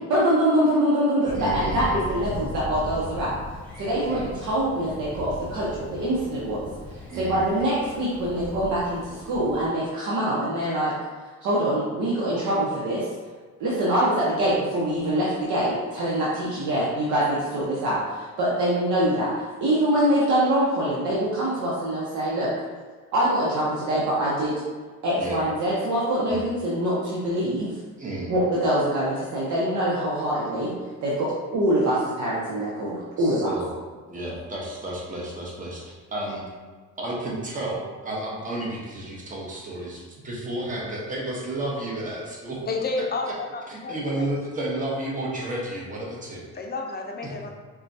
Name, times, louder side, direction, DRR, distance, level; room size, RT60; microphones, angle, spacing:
voice 1, 0.1-3.3 3.8-6.6 7.1-10.9 11.4-13.1 13.6-19.3 19.6-22.5 23.1-24.5 25.0-27.7 28.3-30.7 31.0-33.5, right 1 dB, 75° right, -7 dB, 0.8 m, -24 dB
Thunder, 1.3-9.7, left 1 dB, 5° left, 1.1 m, -38 dB
voice 2, 1.3-2.0 4.0-4.3 7.1-7.4 25.2-25.4 26.3-26.4 28.0-28.4 33.2-33.7 34.1-36.4 37.0-42.6 43.0-43.3 43.7-46.4 47.2-47.3, right 1 dB, 25° right, -4 dB, 1.0 m, -32 dB
voice 3, 42.7-44.3 46.5-47.5, left 3 dB, 30° left, 2 dB, 0.5 m, -31 dB
4.3 x 2.3 x 2.7 m, 1.4 s
cardioid pair, 90°, 30 cm